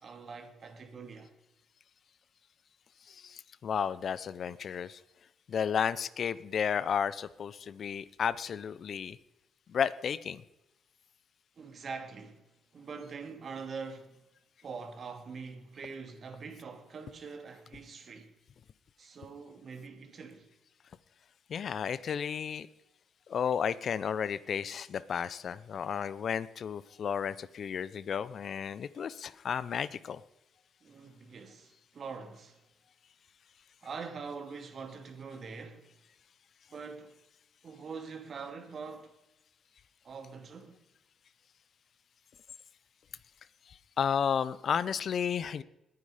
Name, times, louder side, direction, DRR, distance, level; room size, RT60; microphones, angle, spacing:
voice 1, 0.0-1.3 11.6-14.3 14.6-18.3 19.0-20.5 30.8-32.6 33.8-35.9 36.7-37.2 37.6-39.1 40.0-40.8, right 5 dB, 50° right, 2.6 m, -44 dB
voice 2, 3.1-5.0 5.5-9.2 9.7-10.4 21.5-22.7 23.3-30.2 43.7-45.6, left 7 dB, 55° left, 0.8 m, -33 dB
21.0 x 9.8 x 5.1 m
cardioid pair, 90°, 0 cm